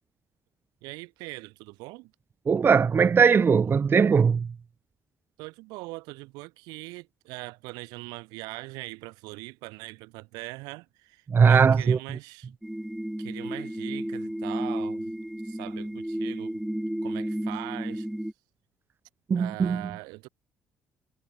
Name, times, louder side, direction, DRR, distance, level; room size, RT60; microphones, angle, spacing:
voice 1, 0.8-2.1 5.4-12.5 13.2-15.1 15.4-16.6 17.0-18.1 19.3-20.3, right 24 dB, 85° right, 8.0 m, -41 dB
voice 2, 2.5-4.5 11.3-12.0 19.3-19.8, right 6 dB, 35° right, 0.6 m, -20 dB
sound 1, 12.6-18.3, right 1 dB, 5° right, 2.4 m, -32 dB
supercardioid pair, 75°, 7 cm